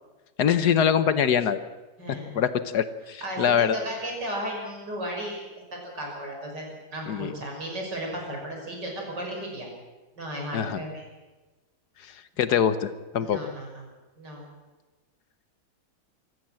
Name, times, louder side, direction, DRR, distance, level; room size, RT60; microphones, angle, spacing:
voice 1, 0.4-1.6 2.3-3.8 7.1-7.3 10.5-10.8 12.4-13.4, left 8 dB, 65° left, 13 dB, 1.4 m, -23 dB
voice 2, 2.0-2.4 3.2-5.4 5.7-6.7 6.9-9.7 10.2-11.0 12.5-12.6 13.2-13.7 14.2-14.4, right 1 dB, 70° right, 0 dB, 6.5 m, -34 dB
25.5 x 14.5 x 7.7 m, 1.2 s
omnidirectional pair, 1.9 m